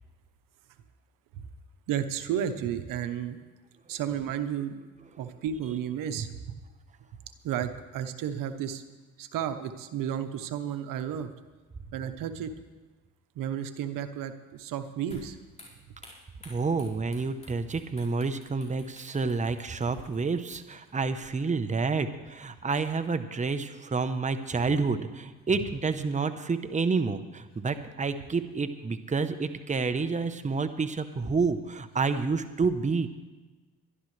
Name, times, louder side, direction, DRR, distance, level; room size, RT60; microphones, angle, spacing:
voice 1, 1.9-3.4 3.9-4.8 5.2-6.6 7.4-8.8 9.2-11.3 11.9-12.5 13.3-15.4, right 9 dB, 85° right, 9 dB, 1.0 m, -32 dB
sound 1, 15.1-21.7, left 1 dB, 20° left, 4.7 m, -55 dB
voice 2, 16.5-33.1, right 4 dB, 25° right, 10 dB, 0.9 m, -29 dB
22.5 x 12.0 x 3.3 m, 1.3 s
cardioid pair, 80°, 32 cm